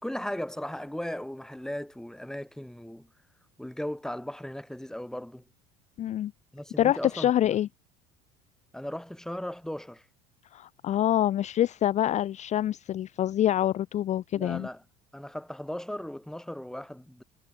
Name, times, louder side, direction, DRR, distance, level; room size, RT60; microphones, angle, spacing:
voice 1, 0.0-3.1 3.6-5.4 6.5-7.5 8.7-10.0 14.3-14.8 15.1-17.2, left 1 dB, 5° left, 3.1 m, -37 dB
voice 2, 6.0-6.3 6.8-7.7 10.5-14.7, left 12 dB, 40° left, 0.5 m, -26 dB
supercardioid pair, 85°, 19 cm